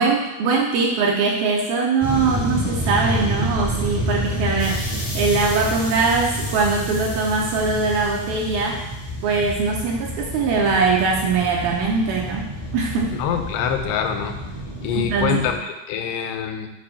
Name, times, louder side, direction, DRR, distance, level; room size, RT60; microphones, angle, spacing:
voice 1, 0.0-8.8 9.2-12.5 12.7-13.1 14.9-15.3, right 4 dB, 80° right, -1 dB, 2.3 m, -21 dB
sound 1, 2.0-15.5, equal, 35° left, 0.7 m, -28 dB
voice 2, 13.1-14.3 14.8-16.7, left 8 dB, 85° left, 5 dB, 2.6 m, -25 dB
6.8 x 3.3 x 5.6 m, 0.95 s
omnidirectional pair, 4.8 m